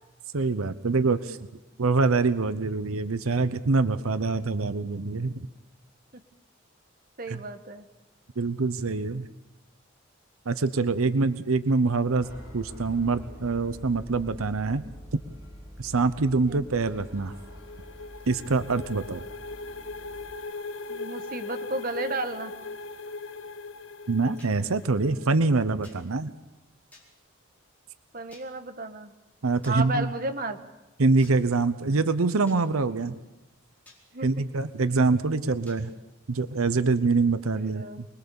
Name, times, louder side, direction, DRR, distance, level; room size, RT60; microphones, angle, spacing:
voice 1, 0.3-1.4 1.8-5.5 7.3-7.4 8.4-9.3 10.5-12.3 12.5-14.8 15.1-15.2 15.8-17.3 18.3-19.2 24.1-26.3 29.4-30.1 31.0-33.2 34.2-35.9 36.3-38.1, right 3 dB, 85° right, 13 dB, 0.8 m, -25 dB
voice 2, 7.2-7.8 16.5-16.6 20.9-22.5 28.1-29.1 29.7-30.6 34.1-34.3 37.5-38.0, right 2 dB, 45° right, 8 dB, 1.3 m, -33 dB
sound 1, 12.2-20.3, equal, 10° right, 5.6 m, -45 dB
sound 2, 16.9-25.4, left 3 dB, 65° left, 0.7 m, -40 dB
sound 3, 24.4-24.5 25.8-26.0 26.9-27.1 28.3-28.5 29.6-29.8 31.2-31.4 32.5-32.6 33.9-34.0 35.7-35.8, left 2 dB, 10° left, 4.5 m, -52 dB
24.5 x 21.0 x 7.0 m, 1.1 s
head